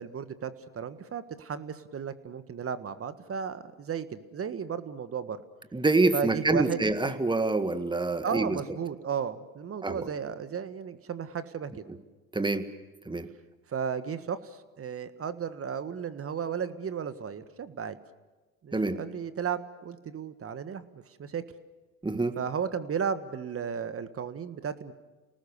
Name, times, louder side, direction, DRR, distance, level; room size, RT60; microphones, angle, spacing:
voice 1, 0.0-5.4 6.1-6.8 8.2-11.8 13.7-18.0 18.6-21.4 22.4-24.9, right 7 dB, 30° right, 12 dB, 1.6 m, -34 dB
voice 2, 5.7-8.6 9.8-10.1 12.3-12.6 13.1-13.3 18.7-19.0 22.0-22.4, right 3 dB, 10° right, 10 dB, 1.8 m, -26 dB
29.0 x 19.0 x 7.0 m, 1.3 s
hypercardioid pair, 75°, 42 cm